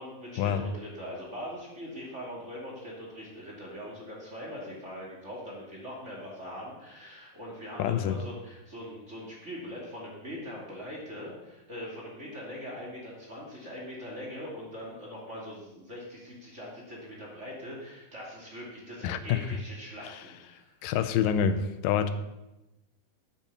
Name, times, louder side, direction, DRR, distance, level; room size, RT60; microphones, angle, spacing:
voice 1, 0.0-20.7, equal, 20° right, -4 dB, 2.5 m, -42 dB
voice 2, 7.8-8.2 19.0-19.6 20.0-20.2 20.8-22.1, left 8 dB, 85° left, 11 dB, 2.4 m, -27 dB
8.9 x 8.6 x 6.8 m, 0.97 s
omnidirectional pair, 4.0 m